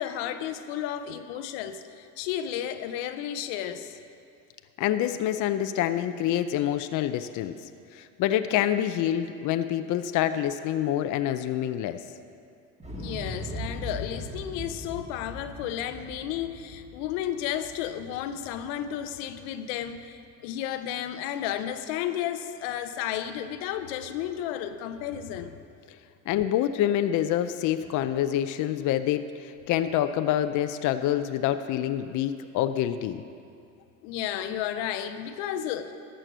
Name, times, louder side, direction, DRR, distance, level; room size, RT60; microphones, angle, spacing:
voice 1, 0.0-4.0 13.0-25.6 34.0-35.9, left 10 dB, 85° left, 9 dB, 0.8 m, -33 dB
voice 2, 4.8-7.5 7.9-12.0 26.3-33.2, left 11 dB, 50° left, 10 dB, 0.5 m, -26 dB
Explosion, 12.8-18.8 19.2-19.3, equal, 15° right, 1.6 m, -39 dB
13.5 x 7.6 x 6.2 m, 2.4 s
cardioid pair, 120°, 40 cm